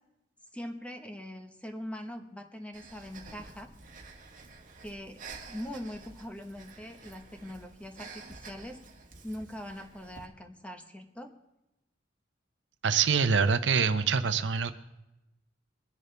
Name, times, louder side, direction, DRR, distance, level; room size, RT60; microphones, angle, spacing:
voice 1, 0.5-3.7 4.8-5.2 5.5-8.8 9.2-11.3, equal, 5° left, 5 dB, 1.2 m, -42 dB
Breathing, 2.7-10.2, right 4 dB, 45° right, 1.6 m, -49 dB
voice 2, 12.8-14.7, right 6 dB, 70° right, 10 dB, 0.7 m, -25 dB
22.0 x 10.5 x 3.4 m, 0.93 s
head